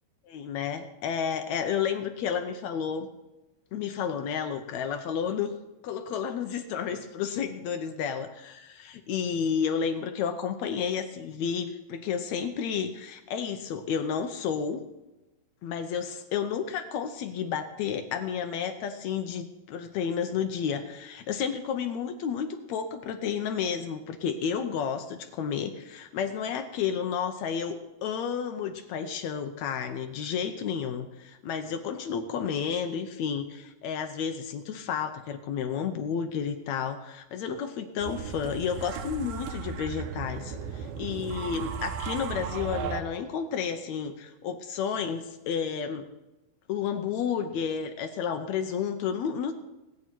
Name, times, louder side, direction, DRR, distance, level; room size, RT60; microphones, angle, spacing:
voice 1, 0.3-3.1 3.7-5.6 5.8-14.8 15.6-46.1 46.7-49.5, left 7 dB, 75° left, 7 dB, 1.6 m, -31 dB
sound 1, 38.0-43.0, right 7 dB, 90° right, 2.7 m, -35 dB
19.5 x 8.4 x 4.5 m, 1.0 s
omnidirectional pair, 4.1 m